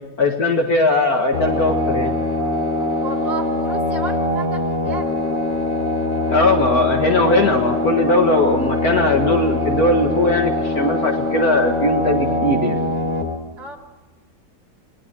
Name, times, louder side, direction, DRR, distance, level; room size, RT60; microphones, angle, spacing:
voice 1, 0.2-2.1 6.3-12.8, left 2 dB, 50° left, 3 dB, 2.2 m, -19 dB
sound 1, 1.3-13.2, left 2 dB, 80° left, 4.6 m, -22 dB
voice 2, 3.0-5.2 13.6-13.8, right 4 dB, 55° right, -1 dB, 4.1 m, -32 dB
27.0 x 22.0 x 6.2 m, 1.2 s
omnidirectional pair, 2.1 m